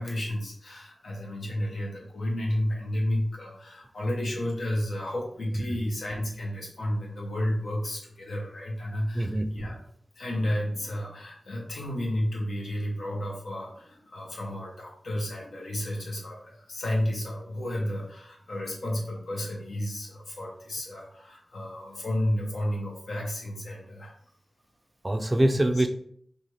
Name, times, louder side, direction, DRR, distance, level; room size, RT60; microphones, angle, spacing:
voice 1, 0.0-9.8 10.2-24.1, left 1 dB, 85° left, -2 dB, 0.9 m, -32 dB
voice 2, 9.1-9.6 25.0-25.9, right 1 dB, 25° right, 8 dB, 0.3 m, -24 dB
2.6 x 2.4 x 3.0 m, 0.64 s
cardioid pair, 55°, 0 cm